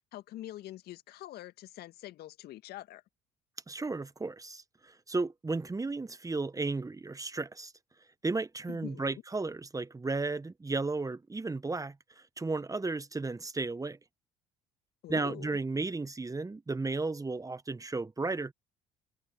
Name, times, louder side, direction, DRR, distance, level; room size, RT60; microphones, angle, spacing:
voice 1, 0.1-3.0 8.7-9.2 15.0-15.5, left 14 dB, 60° left, 2.2 m, -45 dB
voice 2, 3.7-7.7 8.2-11.9 12.4-14.0 15.1-18.5, right 3 dB, 20° right, 1.6 m, -34 dB
hypercardioid pair, 55°, 19 cm